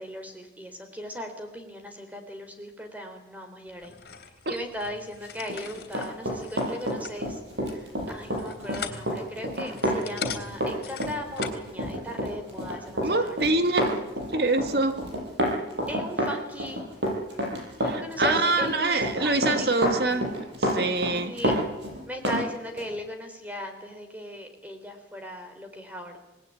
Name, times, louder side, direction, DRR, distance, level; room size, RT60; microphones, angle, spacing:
voice 1, 0.0-4.0 4.5-7.4 7.7-13.4 15.9-16.8 17.8-19.9 21.3-21.5 22.1-26.2, equal, 10° right, 5 dB, 3.7 m, -38 dB
sound 1, 3.8-11.7, left 6 dB, 65° left, 3.5 m, -41 dB
Run, 5.4-22.4 22.8-22.9, equal, 80° right, 7.8 m, -29 dB
voice 2, 13.0-14.0 14.3-15.1 17.8-21.3, right 2 dB, 60° right, 9 dB, 1.8 m, -25 dB
27.0 x 19.5 x 9.0 m, 0.97 s
head